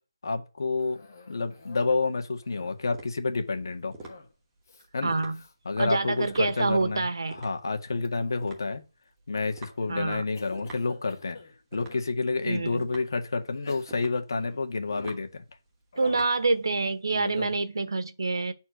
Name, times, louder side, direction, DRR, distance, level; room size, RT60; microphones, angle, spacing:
voice 1, 0.2-3.9 4.9-5.1 5.6-7.0 7.4-8.8 9.3-11.4 11.7-15.4 17.1-17.5, left 3 dB, 60° left, 1.8 m, -29 dB
Cough, 0.8-2.0 2.3-3.0 4.0-4.4 4.6-4.9 5.3-5.5 6.1-6.5 8.0-8.8 9.4-9.8 10.3-12.1 12.8-12.9 13.5-15.3 15.9-16.4, left 3 dB, 40° left, 2.2 m, -50 dB
sound 1, 1.4-17.0, right 2 dB, 10° right, 1.2 m, -49 dB
voice 2, 5.0-5.4 5.8-7.4 9.9-10.2 12.5-12.8 16.0-18.5, right 3 dB, 75° right, 1.3 m, -27 dB
9.2 x 4.5 x 6.6 m
hypercardioid pair, 175°, 2 cm